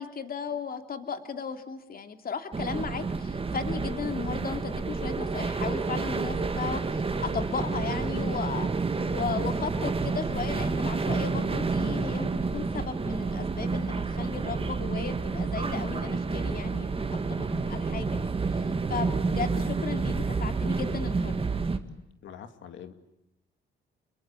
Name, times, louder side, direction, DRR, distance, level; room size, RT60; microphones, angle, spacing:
voice 1, 0.0-8.7 9.1-16.9 17.3-21.4, left 6 dB, 50° left, 7 dB, 2.8 m, -35 dB
sound 1, 2.5-21.8, right 4 dB, 30° right, 2.1 m, -29 dB
voice 2, 22.2-22.9, left 8 dB, 70° left, 9 dB, 2.5 m, -44 dB
29.5 x 22.0 x 8.6 m, 0.87 s
cardioid pair, 90°, 20 cm